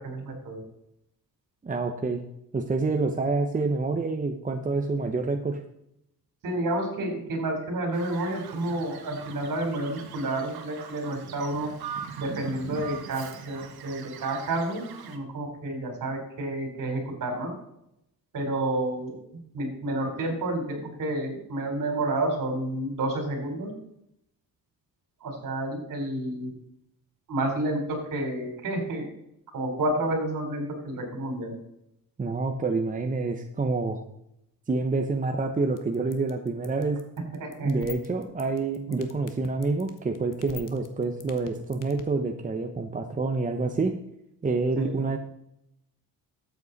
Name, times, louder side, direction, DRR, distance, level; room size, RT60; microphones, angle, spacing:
voice 1, 0.0-0.6 6.4-11.7 12.2-17.5 18.3-19.1 19.5-23.7 25.2-26.5 27.3-29.0 29.5-31.6 37.4-37.7 38.9-39.0 44.8-44.9, right 1 dB, 60° right, 3 dB, 4.1 m, -30 dB
voice 2, 1.6-2.2 2.5-5.6 32.2-34.0 34.7-37.0 37.6-44.0 44.4-45.2, right 3 dB, 20° right, 5 dB, 0.9 m, -27 dB
Bird vocalization bird call bird song, 7.9-15.2, right 7 dB, 80° right, 1.5 m, -41 dB
sound 1, 35.8-42.0, left 8 dB, 55° left, 1.5 m, -42 dB
12.5 x 8.4 x 4.1 m, 0.79 s
cardioid pair, 125°, 37 cm